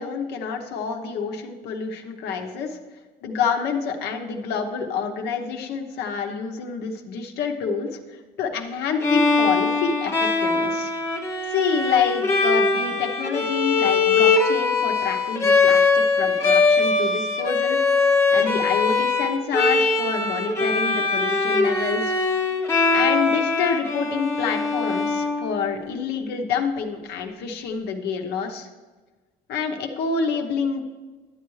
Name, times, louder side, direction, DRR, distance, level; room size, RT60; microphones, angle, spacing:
voice 1, 0.0-2.8 3.2-10.9 11.5-17.8 18.0-22.3 22.9-28.7 29.5-30.9, left 6 dB, 80° left, 3 dB, 0.9 m, -27 dB
Bowed string instrument, 9.0-25.9, left 4 dB, 15° left, 0.8 m, -21 dB
11.5 x 8.3 x 3.2 m, 1.3 s
cardioid pair, 110°, 17 cm